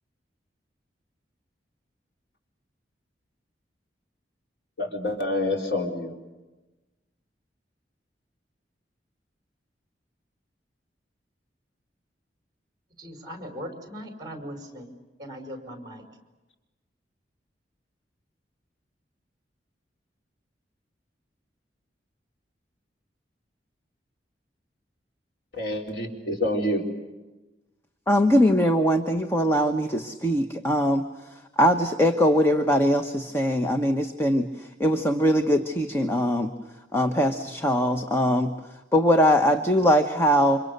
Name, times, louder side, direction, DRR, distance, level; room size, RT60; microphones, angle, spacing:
voice 1, 4.8-6.1 25.5-26.8, left 1 dB, 70° left, 1 dB, 4.4 m, -27 dB
voice 2, 13.0-16.0, equal, 25° right, 4 dB, 5.0 m, -39 dB
voice 3, 28.1-31.0 31.6-36.5 36.9-38.5 38.9-40.6, equal, 15° left, 5 dB, 1.1 m, -21 dB
29.5 x 26.0 x 6.8 m, 1.1 s
head